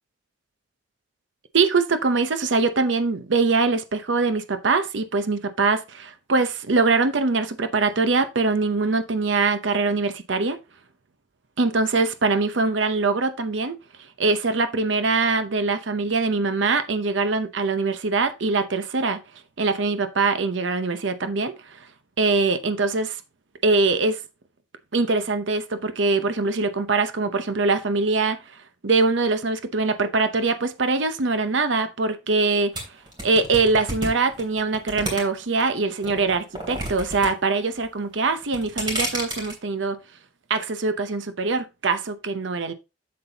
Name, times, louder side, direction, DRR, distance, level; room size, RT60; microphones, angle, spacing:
voice 1, 1.5-10.6 11.6-13.8 14.2-19.2 19.6-21.9 22.2-23.2 23.6-24.2 24.9-28.4 28.8-32.8 33.2-40.0 40.5-42.7, right 3 dB, 75° right, 0.7 m, -23 dB
sound 1, 32.7-35.6 36.0-37.3 37.6-38.0 38.4-39.5, right 1 dB, 25° right, 3.0 m, -30 dB
7.8 x 7.6 x 2.8 m
head